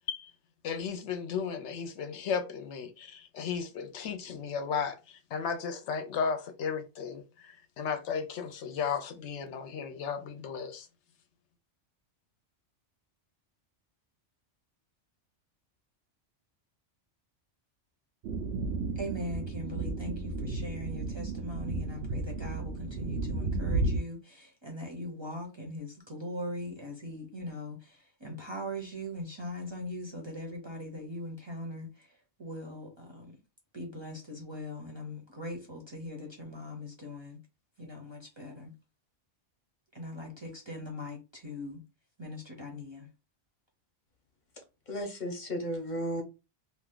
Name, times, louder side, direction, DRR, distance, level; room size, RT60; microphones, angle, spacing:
voice 1, 0.6-10.9, left 6 dB, 75° left, 0.9 m, -35 dB
sound 1, 18.2-24.0, right 3 dB, 75° right, 0.9 m, -33 dB
voice 2, 19.0-32.1 32.4-33.4 33.7-37.4 37.8-38.7 39.9-41.8 42.2-43.1, left 1 dB, 30° right, 0.7 m, -40 dB
voice 3, 44.9-46.2, equal, 45° left, 0.9 m, -34 dB
2.7 x 2.3 x 3.6 m
omnidirectional pair, 1.2 m